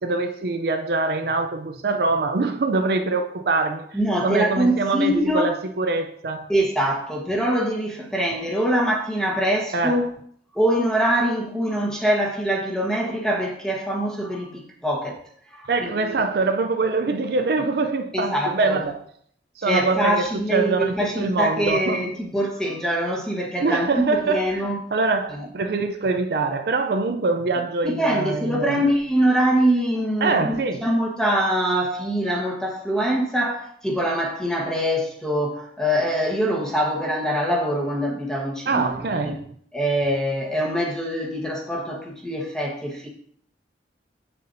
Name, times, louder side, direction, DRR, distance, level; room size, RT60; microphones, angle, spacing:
voice 1, 0.0-3.9 4.2-6.5 9.7-10.0 15.6-19.0 19.6-20.2 20.5-22.1 23.6-28.8 30.2-30.9 38.7-39.4, right 3 dB, 60° right, 0.5 m, -24 dB
voice 2, 3.9-5.5 6.5-10.1 10.5-15.2 15.5-15.9 18.1-18.8 19.6-24.8 25.3-25.5 27.8-39.3 39.7-43.1, equal, 5° left, 1.2 m, -24 dB
8.4 x 6.6 x 2.7 m
head